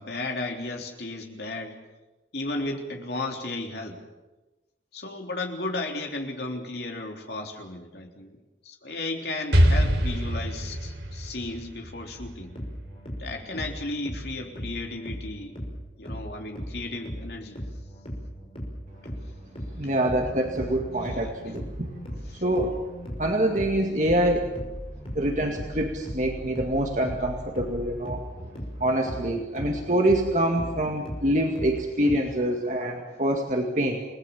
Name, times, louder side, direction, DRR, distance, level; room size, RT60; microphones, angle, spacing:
voice 1, 0.0-1.8 2.3-4.0 4.9-8.4 8.6-12.5 13.2-15.6 16.0-17.6 21.0-21.6 22.2-22.4, left 2 dB, 60° left, 2 dB, 3.6 m, -34 dB
Explosion, 9.5-13.3, equal, 60° right, 3.9 m, -24 dB
sound 1, 12.2-32.2, equal, 30° left, 5.8 m, -38 dB
voice 2, 19.8-21.9 22.4-22.7 23.2-24.5 25.1-28.5 28.8-34.0, right 1 dB, 40° right, 2 dB, 2.1 m, -25 dB
29.5 x 19.5 x 7.3 m, 1.1 s
head